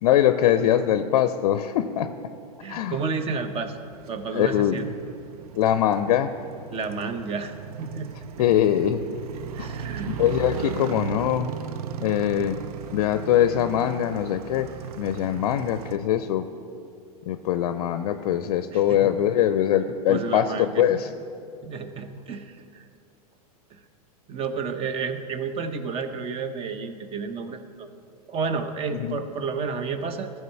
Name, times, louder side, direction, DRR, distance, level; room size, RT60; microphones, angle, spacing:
voice 1, 0.0-2.1 2.7-3.0 4.3-4.8 5.6-6.3 8.4-9.0 9.6-9.7 10.1-11.5 12.0-12.6 12.9-14.7 15.0-16.5 17.3-21.1 28.9-29.2, left 11 dB, 65° left, 10 dB, 0.5 m, -22 dB
voice 2, 2.6-3.8 4.1-4.8 6.7-8.1 8.4-8.5 9.5-10.1 18.7-19.1 20.1-21.0 21.6-22.9 23.7-23.8 24.3-27.9 28.3-30.3, right 5 dB, 30° right, 9 dB, 0.8 m, -31 dB
Motorcycle, 3.4-16.0, right 7 dB, 70° right, 0.5 m, -37 dB
14.0 x 4.7 x 5.7 m, 2.5 s
hypercardioid pair, 110°, 20 cm